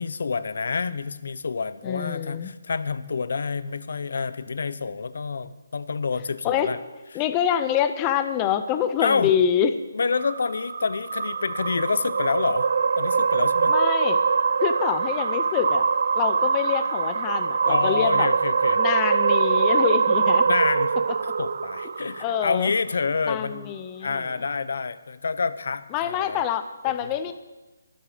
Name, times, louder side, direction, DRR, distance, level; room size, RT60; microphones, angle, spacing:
voice 1, 0.0-6.8 9.0-9.3 9.9-12.7 13.0-13.7 17.7-18.8 20.5-20.9 21.4-23.7 24.0-26.4 26.8-26.9, left 5 dB, 50° left, 14 dB, 0.7 m, -28 dB
voice 2, 1.8-2.5 6.4-6.7 7.1-9.7 13.7-14.2 14.6-15.9 16.1-18.3 18.8-20.5 22.2-22.7 23.3-24.3 25.9-27.3, left 9 dB, 10° left, 10 dB, 0.5 m, -25 dB
sound 1, 10.1-22.6, right 5 dB, 45° right, 0.4 m, -23 dB
23.5 x 8.0 x 5.0 m, 1.1 s
hypercardioid pair, 180°, 0 cm